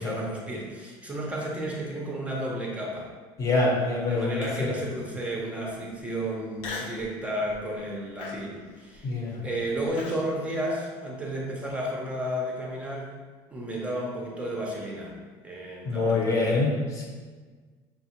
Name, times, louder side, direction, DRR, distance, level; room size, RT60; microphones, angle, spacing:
voice 1, 0.0-3.1 4.1-9.1 9.4-13.1 13.5-15.1 15.4-16.6, right 1 dB, 10° right, -2 dB, 0.5 m, -32 dB
voice 2, 3.4-4.7 9.0-9.4 15.8-17.1, left 3 dB, 30° left, 0 dB, 0.7 m, -25 dB
Human voice, 4.4-4.8 5.4-5.5 6.6-7.1 7.5-7.8 8.2-10.3, left 3 dB, 70° left, 0.6 m, -39 dB
5.6 x 2.3 x 2.8 m, 1.5 s
cardioid pair, 150°, 11 cm